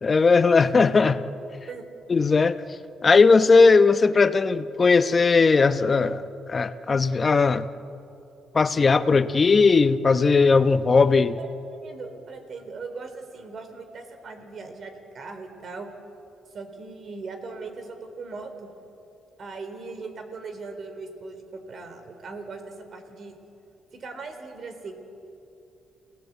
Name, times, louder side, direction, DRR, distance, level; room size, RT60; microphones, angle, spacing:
voice 1, 0.0-1.2 2.1-2.6 3.0-7.7 8.5-11.3, left 4 dB, 35° left, 11 dB, 1.0 m, -18 dB
voice 2, 11.4-15.9 16.5-18.7 19.4-23.4 23.9-25.0, right 4 dB, 50° right, 7 dB, 3.9 m, -39 dB
30.0 x 17.5 x 8.3 m, 2.7 s
cardioid pair, 90°, 0 cm